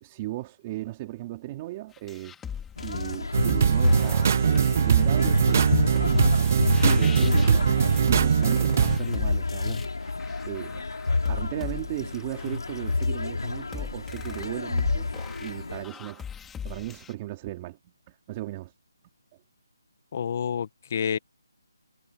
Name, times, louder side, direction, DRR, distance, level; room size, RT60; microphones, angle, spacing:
voice 1, 0.0-2.3 2.8-10.1 10.4-10.8 11.3-15.1 15.4-17.8 18.1-18.7 21.1-21.2, right 17 dB, 20° right, 3.2 m, -36 dB
sound 1, 1.9-17.1, left 8 dB, 5° left, 4.1 m, -40 dB
sound 2, 2.8-15.8, left 3 dB, 90° left, 4.2 m, -29 dB
sound 3, 3.3-9.0, right 7 dB, 35° right, 0.6 m, -21 dB
voice 2, 20.1-21.2, left 7 dB, 35° left, 1.1 m, -28 dB
hypercardioid pair, 170°, 2 cm